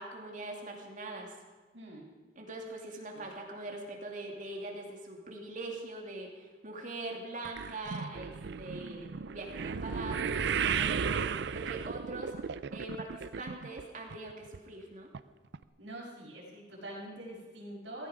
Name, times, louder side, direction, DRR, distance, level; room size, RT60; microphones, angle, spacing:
voice 1, 0.0-1.4 2.3-12.3 12.7-15.1, right 2 dB, 45° right, 0 dB, 2.8 m, -42 dB
sound 1, 7.4-13.8 14.1-14.6 15.1-15.2 15.5-15.6, right 6 dB, 70° right, 0.5 m, -34 dB
voice 2, 15.8-18.1, right 1 dB, 85° right, -4 dB, 6.2 m, -45 dB
16.5 x 15.5 x 5.1 m, 1.3 s
head